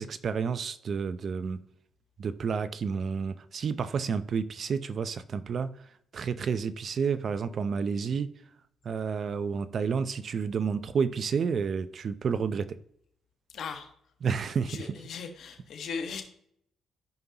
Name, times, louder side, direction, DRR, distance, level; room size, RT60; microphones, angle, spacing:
voice 1, 0.0-1.6 2.2-5.7 6.1-8.3 8.8-12.8 14.2-15.0, right 6 dB, 50° right, 0.6 m, -30 dB
voice 2, 13.5-13.9 14.7-16.2, left 5 dB, 65° left, 1.5 m, -37 dB
13.5 x 5.4 x 3.0 m
cardioid pair, 90°, 0 cm